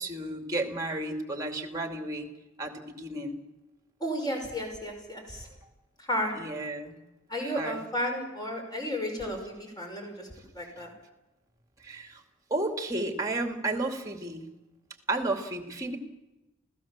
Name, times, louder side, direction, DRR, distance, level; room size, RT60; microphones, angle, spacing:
voice 1, 0.0-2.3 2.6-3.4 6.3-7.0 7.4-7.8 11.8-12.2 12.5-14.5 15.1-16.0, right 2 dB, 15° right, 5 dB, 2.5 m, -32 dB
voice 2, 4.0-5.5 6.0-6.3 7.3-10.3 10.5-10.9, equal, 20° left, 2 dB, 5.8 m, -33 dB
28.5 x 16.5 x 7.4 m, 1.0 s
head